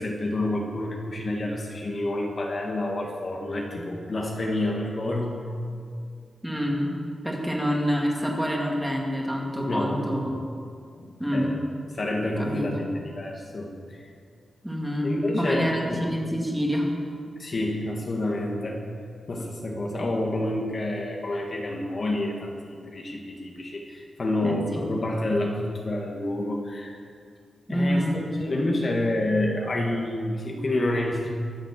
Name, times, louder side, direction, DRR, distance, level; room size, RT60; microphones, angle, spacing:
voice 1, 0.0-5.4 9.7-10.3 11.0-11.5 12.0-12.9 13.2-14.1 15.0-16.0 17.4-18.8 19.3-27.0 27.7-31.3, left 1 dB, 35° left, 0 dB, 1.9 m, -28 dB
voice 2, 6.4-6.9 7.2-10.3 11.2-11.5 12.4-12.9 14.6-16.9 24.4-24.8 27.7-28.3, equal, 5° right, -2 dB, 2.5 m, -27 dB
23.0 x 7.7 x 7.5 m, 2.2 s
wide cardioid pair, 155°, 0 cm